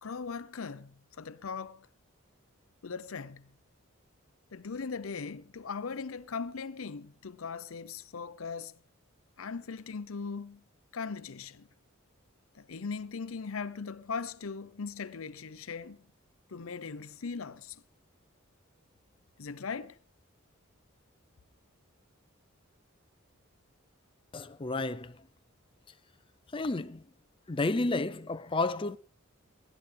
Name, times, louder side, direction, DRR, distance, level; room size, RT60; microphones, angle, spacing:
voice 1, 0.0-1.9 2.8-3.5 4.5-8.8 9.4-10.6 10.9-11.7 12.5-16.0 16.5-17.8 19.4-20.0, left 5 dB, 80° left, 0.7 m, -39 dB
voice 2, 24.3-25.2 26.5-27.0 27.5-29.0, left 2 dB, 25° left, 0.6 m, -31 dB
19.0 x 11.0 x 3.4 m
head